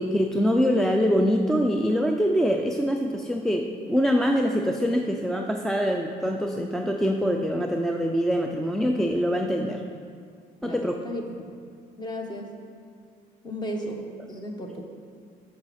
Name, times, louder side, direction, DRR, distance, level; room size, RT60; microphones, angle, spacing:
voice 1, 0.0-9.8 10.6-11.0, equal, ahead, 2 dB, 0.4 m, -24 dB
voice 2, 10.6-11.2 12.0-12.5 13.4-14.0 14.3-14.8, equal, 25° left, 2 dB, 1.1 m, -34 dB
7.8 x 6.3 x 4.2 m, 2.1 s
cardioid pair, 110°, 17 cm